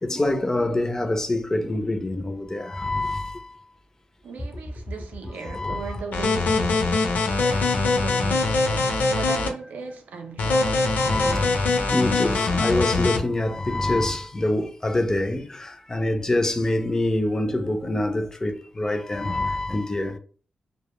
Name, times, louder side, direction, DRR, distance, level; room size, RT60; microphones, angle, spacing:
voice 1, 0.0-3.6 5.4-6.0 10.9-20.2, left 1 dB, 20° left, 0.3 m, -26 dB
voice 2, 4.2-10.9, right 4 dB, 80° right, 0.4 m, -38 dB
sound 1, 6.1-9.5 10.4-13.2, left 3 dB, 85° left, 0.5 m, -22 dB
2.1 x 2.0 x 2.9 m
wide cardioid pair, 120°, 3 cm